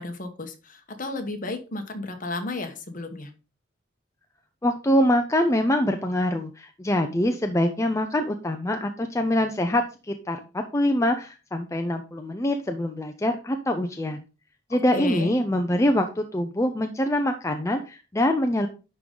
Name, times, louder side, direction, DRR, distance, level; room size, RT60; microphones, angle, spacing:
voice 1, 0.0-3.3 14.7-15.4, left 2 dB, 45° left, 6 dB, 1.3 m, -33 dB
voice 2, 4.6-14.2 14.7-18.7, left 1 dB, 15° left, 5 dB, 0.5 m, -24 dB
10.5 x 3.8 x 3.8 m, 0.32 s
head